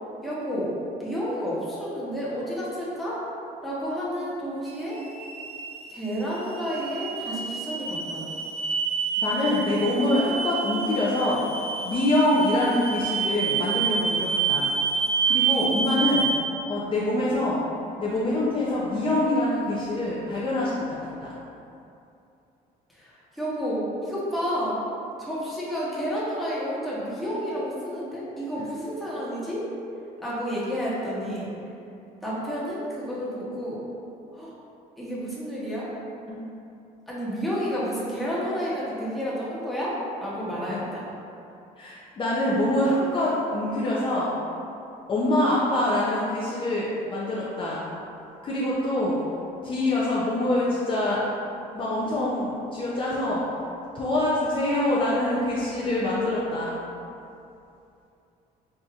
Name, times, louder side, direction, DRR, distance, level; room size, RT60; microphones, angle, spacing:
voice 1, 0.2-3.2 3.6-5.0 5.9-8.3 22.9-24.8 25.2-29.7 30.2-31.5 32.2-33.8 34.3-34.5 35.0-35.9 37.1-41.1, equal, ahead, -9 dB, 1.0 m, -30 dB
sound 1, 4.7-16.4, right 5 dB, 35° right, 0.4 m, -28 dB
voice 2, 9.2-11.4 11.8-14.7 15.3-16.3 16.7-17.6 18.0-20.8 21.2-21.4 36.3-36.4 40.7-40.8 41.8-44.3 45.1-47.9 48.4-49.2 49.6-51.2 51.7-53.5 53.9-56.8, left 1 dB, 30° left, -7 dB, 0.5 m, -25 dB
4.8 x 2.6 x 2.4 m, 2.7 s
cardioid pair, 110°, 17 cm